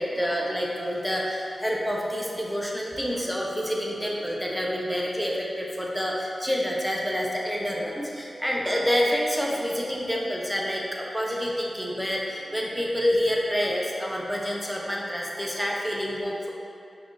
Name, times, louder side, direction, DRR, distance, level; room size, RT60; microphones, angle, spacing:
voice 1, 0.0-16.5, equal, ahead, -3 dB, 0.4 m, -28 dB
5.3 x 2.3 x 2.5 m, 2.6 s
wide cardioid pair, 75°, 0 cm